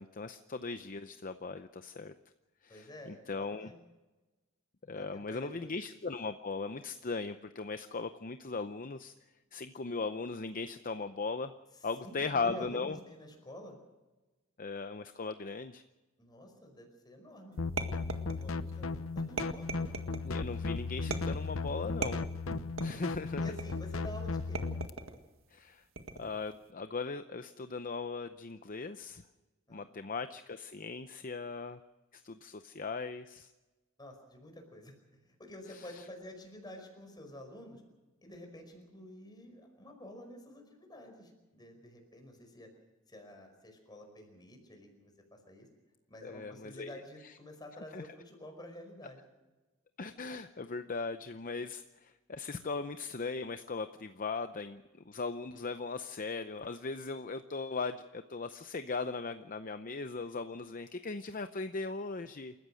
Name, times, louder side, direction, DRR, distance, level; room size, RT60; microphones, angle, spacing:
voice 1, 0.0-2.1 2.6-3.7 4.9-9.1 9.5-11.6 11.8-13.0 14.6-15.8 20.2-22.2 22.8-23.6 25.5-25.8 26.2-29.2 29.7-31.8 32.1-33.5 35.8-36.0 46.2-46.9 47.9-48.1 50.0-62.5, left 4 dB, 40° left, 10 dB, 0.7 m, -38 dB
voice 2, 2.7-3.8 4.9-5.7 12.0-13.8 16.2-19.8 23.4-24.7 29.7-30.0 34.0-34.9 35.3-37.8 38.2-42.7 43.1-45.7 46.1-49.2, left 1 dB, 20° left, 4 dB, 5.2 m, -50 dB
sound 1, 17.6-24.9, left 3 dB, 75° left, 0.8 m, -36 dB
sound 2, 17.8-18.7 19.4-20.3 21.1-21.5 22.0-23.1 23.6-24.0 24.5-25.2 26.0-26.4, right 3 dB, 70° right, 1.9 m, -39 dB
28.0 x 15.0 x 6.4 m, 1.2 s
head